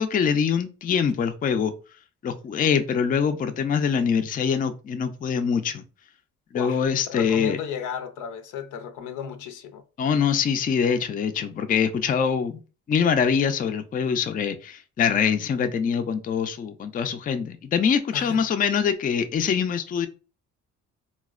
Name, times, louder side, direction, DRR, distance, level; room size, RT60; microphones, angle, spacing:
voice 1, 0.0-1.7 2.2-5.8 6.5-7.6 10.0-12.6 12.9-20.1, left 7 dB, 30° left, 0.4 m, -24 dB
voice 2, 7.1-9.8 18.1-18.4, left 7 dB, 80° left, 0.5 m, -34 dB
4.0 x 2.0 x 2.3 m
cardioid pair, 90°, 30 cm